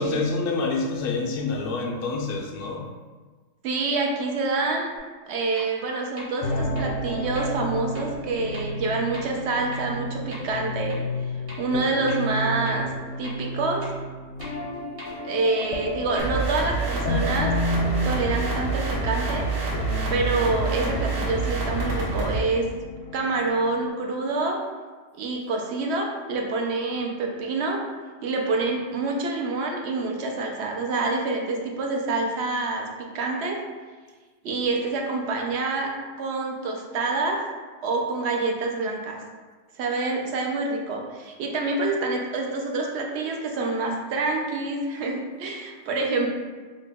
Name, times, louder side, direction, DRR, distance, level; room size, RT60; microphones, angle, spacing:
voice 1, 0.0-2.8, left 3 dB, 60° left, 1 dB, 0.6 m, -27 dB
voice 2, 3.6-4.9 5.2-11.0 11.6-12.9 13.2-13.8 15.2-17.5 18.0-19.5 20.1-22.7 23.1-24.6 25.1-27.8 28.2-33.6 34.4-35.9 36.2-37.4 37.8-39.2 39.8-46.3, right 3 dB, 65° right, 1 dB, 0.8 m, -27 dB
sound 1, 5.0-5.1 5.6-5.7 6.2-6.3 6.8-6.9 7.4-7.5 7.9-8.0 8.5-8.6 9.1-9.2 9.7-9.8 10.3-10.4 10.9-11.0 11.5-11.6 12.1-12.2 12.7-12.8 13.2-13.3 13.8-13.9 14.4-14.5 15.0-15.1 15.6-15.7 16.2-16.3, equal, 50° right, 1.3 m, -41 dB
sound 2, 6.4-23.9, left 1 dB, 80° left, 0.9 m, -32 dB
sound 3, 16.2-22.4, right 4 dB, 90° right, 1.1 m, -27 dB
2.9 x 2.8 x 3.4 m, 1.4 s
omnidirectional pair, 1.3 m